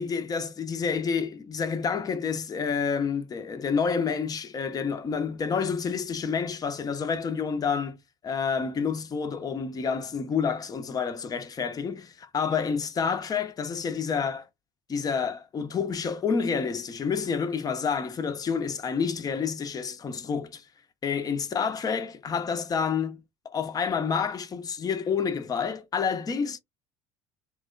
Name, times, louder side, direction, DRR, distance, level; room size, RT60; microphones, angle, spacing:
voice 1, 0.0-8.0 8.2-14.5 14.9-20.6 21.0-26.6, left 6 dB, 25° left, 0.5 m, -29 dB
3.0 x 2.0 x 2.3 m
figure-of-eight pair, 60°, 16 cm